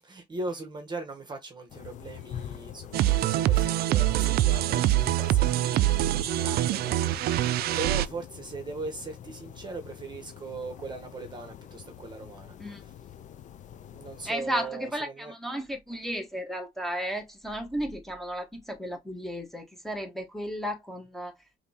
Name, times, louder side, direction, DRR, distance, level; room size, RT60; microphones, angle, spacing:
voice 1, 0.0-12.9 13.9-15.3, right 3 dB, 25° right, 1.0 m, -39 dB
sound 1, 1.7-14.3, left 10 dB, 45° left, 0.5 m, -45 dB
sound 2, 2.9-8.1, right 14 dB, 65° right, 0.4 m, -24 dB
voice 2, 14.2-21.4, equal, ahead, 1.1 m, -34 dB
5.1 x 2.8 x 2.8 m
cardioid pair, 110°, 17 cm